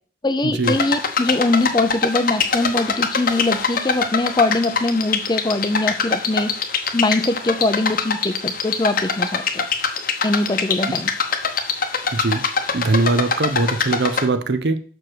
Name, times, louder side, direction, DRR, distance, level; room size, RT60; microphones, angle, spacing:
voice 1, 0.2-6.5 6.9-9.6 10.2-11.1, left 2 dB, 20° left, 10 dB, 0.5 m, -22 dB
sound 1, 0.6-14.3, left 6 dB, 45° left, 0.8 m, -23 dB
voice 2, 12.1-12.4 12.7-14.8, right 3 dB, 55° right, 11 dB, 0.7 m, -20 dB
6.0 x 4.8 x 6.5 m, 0.43 s
head